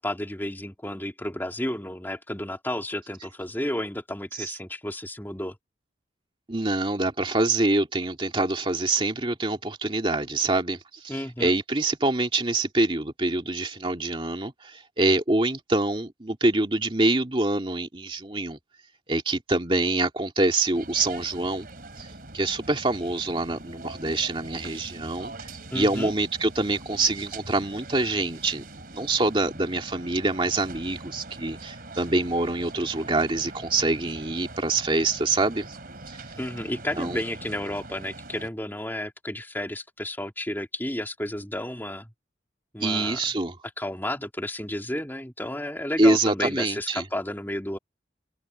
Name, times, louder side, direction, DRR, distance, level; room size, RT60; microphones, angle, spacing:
voice 1, 0.0-5.6 11.1-11.5 25.7-26.1 36.4-42.1 42.7-43.2 43.8-47.8, left 1 dB, 10° left, 2.8 m, -32 dB
voice 2, 6.5-18.6 19.1-21.7 22.0-22.1 22.3-25.3 25.7-28.6 28.9-35.8 36.1-36.2 37.0-37.2 42.8-43.6 46.0-47.0, right 2 dB, 30° right, 2.4 m, -25 dB
sound 1, 20.7-38.5, right 2 dB, 55° right, 3.3 m, -43 dB
open air
head